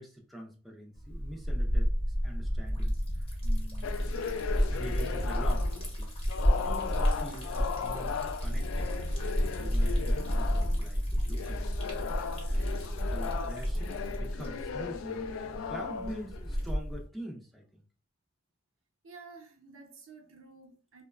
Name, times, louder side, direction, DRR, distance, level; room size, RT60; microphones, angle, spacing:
voice 1, 0.0-1.9 2.2-3.9 4.7-6.1 6.6-9.1 9.5-11.8 12.5-17.8, right 1 dB, ahead, 0.4 m, -45 dB
Liquid, 1.0-17.1, equal, 30° left, 0.8 m, -31 dB
sound 1, 3.8-5.9 6.3-10.8 11.3-16.7, left 6 dB, 85° left, 0.3 m, -37 dB
voice 2, 12.5-13.0 19.0-21.0, right 4 dB, 85° right, 0.7 m, -52 dB
2.9 x 2.0 x 2.3 m
head